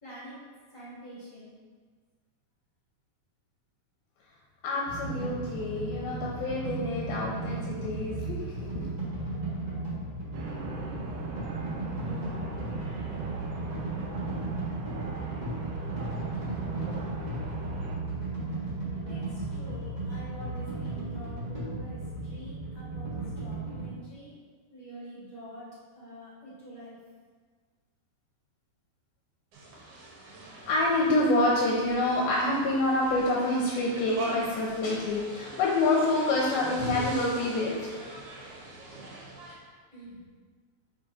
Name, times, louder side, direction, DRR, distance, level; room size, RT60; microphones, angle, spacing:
voice 1, 0.0-0.4 0.7-1.5 19.1-24.3 24.7-25.7 25.9-27.0 39.9-40.2, right 1 dB, 30° left, -9 dB, 1.6 m, -46 dB
voice 2, 4.6-8.9 30.7-37.9, left 2 dB, 75° left, -3 dB, 2.5 m, -27 dB
sound 1, 4.9-23.8, right 2 dB, 25° right, 0.9 m, -35 dB
sound 2, 10.3-18.0, right 2 dB, 85° right, 1.7 m, -40 dB
sound 3, 29.5-39.5, right 2 dB, 60° right, 2.3 m, -42 dB
7.0 x 4.9 x 4.2 m, 1.5 s
omnidirectional pair, 4.6 m